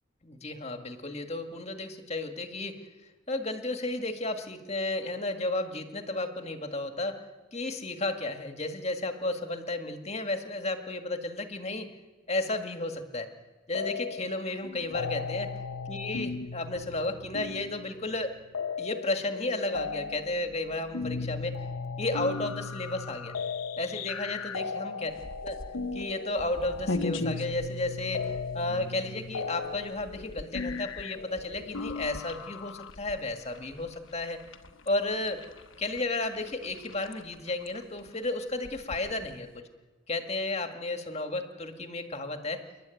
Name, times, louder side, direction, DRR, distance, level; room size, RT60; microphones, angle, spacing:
voice 1, 0.2-2.8 3.3-7.2 7.5-11.9 12.3-13.3 13.7-15.5 15.9-18.3 18.8-21.6 22.0-23.4 23.8-25.1 25.4-25.6 25.9-34.4 34.9-35.4 35.8-39.6 40.1-42.6, left 2 dB, 30° left, 6 dB, 1.8 m, -33 dB
sound 1, 13.7-14.4 14.6-32.9, left 4 dB, 90° left, 0.7 m, -37 dB
sound 2, 25.1-39.6, left 2 dB, 70° left, 1.1 m, -42 dB
29.0 x 11.5 x 9.1 m, 1.3 s
head